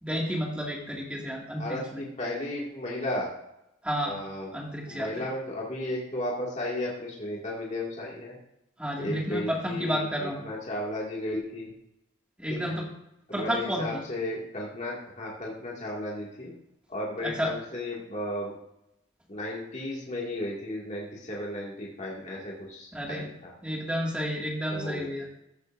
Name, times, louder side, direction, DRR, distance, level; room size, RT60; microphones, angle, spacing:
voice 1, 0.0-2.0 3.8-4.2 4.5-5.3 8.8-10.4 12.4-12.9 13.3-14.0 17.2-17.5 22.9-23.3 23.6-25.3, equal, 5° right, -2 dB, 2.1 m, -31 dB
voice 2, 1.6-3.3 4.0-4.5 4.9-8.4 9.0-11.7 12.5-12.7 13.3-16.5 16.9-18.5 19.3-23.5 24.7-25.1, left 1 dB, 35° left, -4 dB, 2.2 m, -34 dB
15.0 x 8.3 x 2.6 m, 0.83 s
head